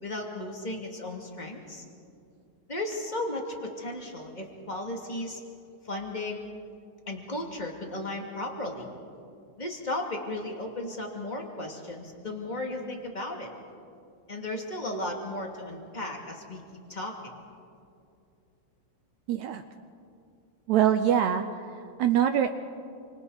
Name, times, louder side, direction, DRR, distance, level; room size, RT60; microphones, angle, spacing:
voice 1, 0.0-1.8 2.7-5.4 5.8-6.5 7.1-8.9 9.6-13.5 14.3-16.6 16.9-17.2, left 1 dB, 15° left, 1 dB, 1.9 m, -35 dB
voice 2, 19.3-19.6 20.7-22.5, right 9 dB, 75° right, 8 dB, 1.7 m, -24 dB
29.0 x 25.5 x 4.1 m, 2.5 s
omnidirectional pair, 4.0 m